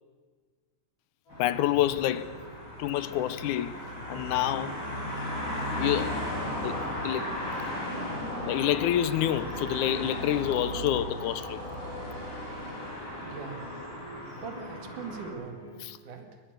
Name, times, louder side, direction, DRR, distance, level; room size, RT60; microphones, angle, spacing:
sound 1, 1.3-2.6 3.0-3.8 4.1-15.9, equal, 65° left, 8.7 m, -48 dB
sound 2, 1.3-15.3, left 1 dB, 25° left, 6.2 m, -36 dB
voice 1, 1.4-2.3 2.8-3.8 4.1-4.8 5.7-6.2 6.6-7.3 8.5-11.6 15.8-16.0, left 12 dB, 80° left, 2.1 m, -28 dB
voice 2, 13.2-13.8 14.3-15.7 16.0-16.4, right 5 dB, 75° right, 3.7 m, -41 dB
22.0 x 20.5 x 6.8 m
omnidirectional pair, 3.6 m